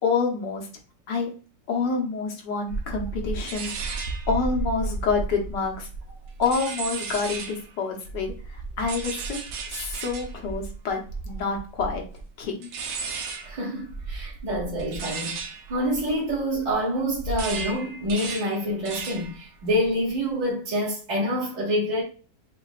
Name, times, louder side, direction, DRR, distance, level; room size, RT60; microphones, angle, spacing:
voice 1, 0.0-0.7 1.1-1.3 1.7-4.0 4.3-5.9 6.4-9.4 9.7-11.0 11.2-12.0 12.4-12.7, left 4 dB, 90° left, 1.7 m, -27 dB
sound 1, 2.7-7.7 8.0-16.7 17.1-19.4 19.7-20.1, right 4 dB, 80° right, 1.4 m, -34 dB
voice 2, 13.4-22.0, equal, 25° right, 1.7 m, -27 dB
7.0 x 2.8 x 2.4 m
omnidirectional pair, 1.8 m